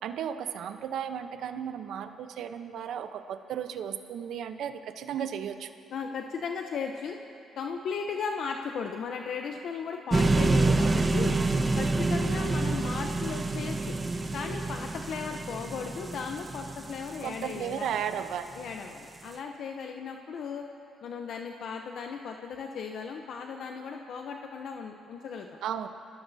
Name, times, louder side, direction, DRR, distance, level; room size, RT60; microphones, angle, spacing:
voice 1, 0.0-5.7 17.2-18.5 25.6-25.9, right 8 dB, 75° right, 8 dB, 0.9 m, -34 dB
voice 2, 5.9-7.2 7.6-11.3 11.8-14.0 14.3-17.9 18.6-20.7 21.0-25.5, left 6 dB, 70° left, 3 dB, 0.8 m, -36 dB
sound 1, 10.1-18.2, right 3 dB, 25° right, 1.1 m, -27 dB
26.5 x 17.0 x 2.8 m, 2.9 s
cardioid pair, 90°, 0 cm